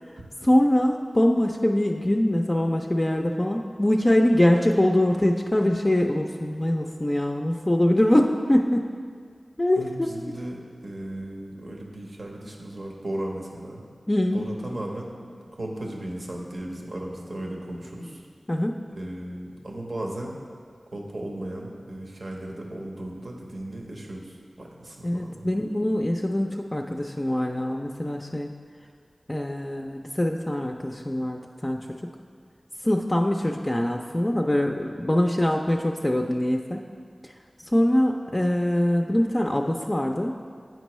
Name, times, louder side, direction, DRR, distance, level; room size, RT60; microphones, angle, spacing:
voice 1, 0.4-8.9 9.6-10.3 14.1-14.4 18.5-18.8 25.0-28.5 29.3-32.0 32.8-36.8 37.2-37.3 37.6-40.4, left 1 dB, 30° left, 1 dB, 0.3 m, -23 dB
voice 2, 9.8-13.8 14.3-18.2 19.0-20.3 20.9-25.5, right 1 dB, 75° right, 0 dB, 0.8 m, -36 dB
9.1 x 4.4 x 3.1 m, 2.1 s
cardioid pair, 40°, 0 cm